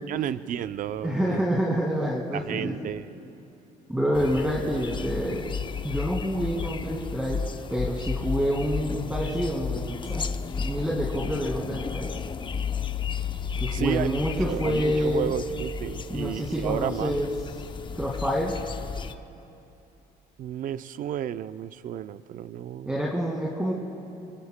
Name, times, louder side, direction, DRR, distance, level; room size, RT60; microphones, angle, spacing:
voice 1, 0.1-1.4 2.3-3.1 13.7-14.2 14.5-17.2 20.4-23.0, right 10 dB, 55° right, 13 dB, 0.5 m, -32 dB
voice 2, 1.0-2.9 3.9-5.5 5.8-7.4 7.7-10.2 10.6-12.1 13.6-15.3 16.1-17.3 17.9-18.5 22.9-23.7, equal, 5° right, -3 dB, 2.0 m, -27 dB
sound 1, 4.1-19.1, left 6 dB, 30° left, 0.6 m, -33 dB
25.5 x 25.0 x 2.2 m, 2.7 s
cardioid pair, 110°, 17 cm